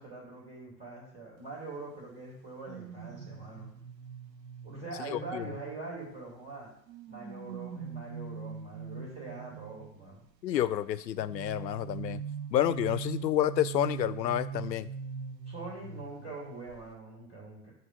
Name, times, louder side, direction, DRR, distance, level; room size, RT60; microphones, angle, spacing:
voice 1, 0.0-3.7 4.6-6.7 7.1-10.2 15.5-17.7, right 3 dB, 10° right, -6 dB, 2.4 m, -43 dB
sound 1, 2.6-6.3 6.9-10.1 11.2-16.4 16.7-16.9, right 7 dB, 80° right, 0.8 m, -42 dB
voice 2, 5.1-5.5 10.4-12.2 12.5-14.9, left 12 dB, 80° left, 16 dB, 0.6 m, -29 dB
8.2 x 3.0 x 5.8 m, 0.70 s
hypercardioid pair, 110°, 50 cm